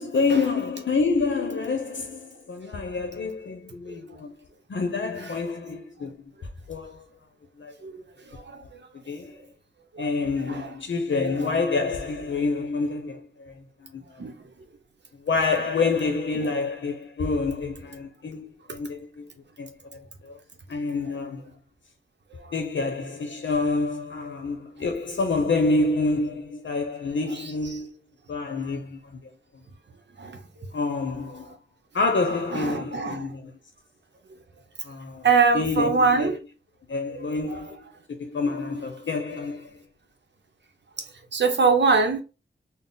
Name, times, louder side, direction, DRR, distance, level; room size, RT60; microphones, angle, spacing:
voice 1, 0.0-4.3 4.7-6.3 6.7-7.0 7.6-7.7 9.1-9.3 10.0-14.3 15.1-19.3 19.6-20.4 20.7-21.4 22.5-27.9 28.3-29.2 30.7-31.5 31.9-33.5 34.8-35.2 35.5-36.3 36.9-37.8 38.1-39.8, left 3 dB, 75° left, 0.7 m, -27 dB
voice 2, 8.3-8.8 9.9-10.7 14.2-14.3 22.3-22.5 30.2-30.4 32.5-33.3 35.2-36.4 37.1-37.6 41.3-42.2, right 4 dB, 65° right, 0.7 m, -24 dB
4.0 x 2.0 x 3.8 m
wide cardioid pair, 105°, 20 cm